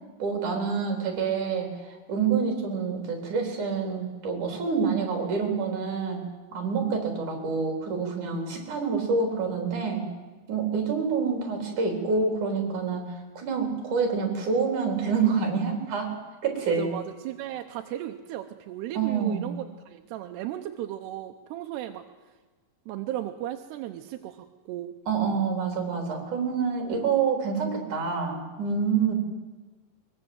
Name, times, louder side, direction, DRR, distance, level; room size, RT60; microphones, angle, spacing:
voice 1, 0.2-1.7 2.1-6.2 6.5-10.1 10.5-13.0 13.4-16.2 16.4-16.9 19.0-19.5 25.1-29.1, right 5 dB, 50° right, 2 dB, 5.4 m, -27 dB
voice 2, 16.6-22.0 22.9-25.0, right 13 dB, 85° right, 6 dB, 3.0 m, -36 dB
22.5 x 22.0 x 8.0 m, 1.3 s
omnidirectional pair, 4.7 m